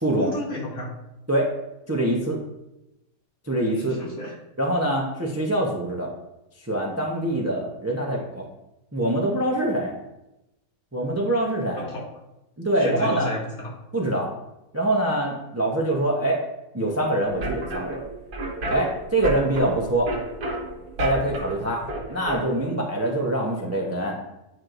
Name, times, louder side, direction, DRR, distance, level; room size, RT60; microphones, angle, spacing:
voice 1, 0.2-0.9 3.8-4.3 11.9-12.1 12.8-13.7, left 1 dB, 75° left, -3 dB, 2.0 m, -32 dB
voice 2, 1.9-2.4 3.4-4.0 4.6-6.1 6.6-8.5 8.9-10.0 10.9-11.9 12.6-13.3 13.9-14.3 14.7-16.4 16.7-18.0 18.7-20.1 21.0-21.8 22.1-24.2, right 1 dB, 15° right, -1 dB, 0.5 m, -24 dB
sound 1, 17.2-22.4, right 2 dB, 90° right, 1.7 m, -32 dB
9.4 x 4.6 x 2.6 m, 0.91 s
omnidirectional pair, 1.6 m